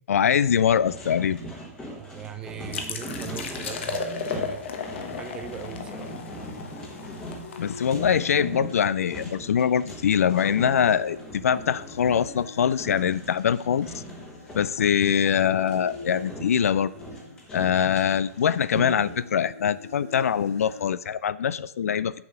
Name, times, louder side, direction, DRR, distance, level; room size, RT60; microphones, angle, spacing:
voice 1, 0.1-1.4 7.6-14.0 14.5-16.9 17.5-22.1, left 8 dB, 70° left, 18 dB, 0.4 m, -23 dB
sound 1, 0.7-14.7 15.4-19.1, equal, 10° left, 1.3 m, -40 dB
voice 2, 1.9-4.6 5.2-6.1, right 9 dB, 10° right, 8 dB, 0.5 m, -40 dB
sound 2, 2.7-8.3, left 5 dB, 45° left, 1.1 m, -35 dB
sound 3, 4.8-20.8, left 3 dB, 85° left, 3.3 m, -46 dB
7.0 x 6.8 x 5.5 m, 0.77 s
hypercardioid pair, 165°, 8 cm